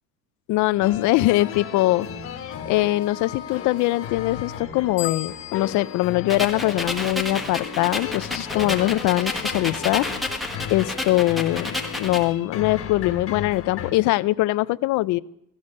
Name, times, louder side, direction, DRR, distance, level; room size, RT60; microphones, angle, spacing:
voice 1, 0.5-2.1 2.7-10.1 10.7-11.7 12.0-15.2, left 17 dB, 55° left, 15 dB, 0.5 m, -22 dB
sound 1, 0.8-13.9, left 8 dB, 40° left, 1.3 m, -35 dB
sound 2, 5.0-7.5, left 14 dB, 75° left, 1.2 m, -39 dB
sound 3, 6.3-12.3, left 2 dB, ahead, 1.1 m, -30 dB
17.5 x 13.5 x 5.3 m, 0.74 s
cardioid pair, 175°, 36 cm